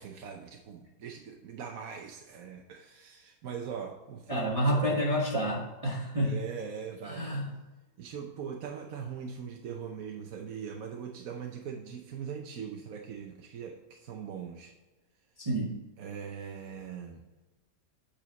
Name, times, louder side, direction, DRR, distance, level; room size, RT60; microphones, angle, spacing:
voice 1, 0.0-5.1 6.2-7.4 8.0-14.7 16.0-17.3, right 7 dB, 65° right, 1 dB, 1.2 m, -41 dB
voice 2, 4.3-6.3 7.0-7.5 15.4-15.7, equal, 25° right, -3 dB, 1.3 m, -29 dB
8.7 x 5.0 x 4.1 m, 1.2 s
omnidirectional pair, 1.7 m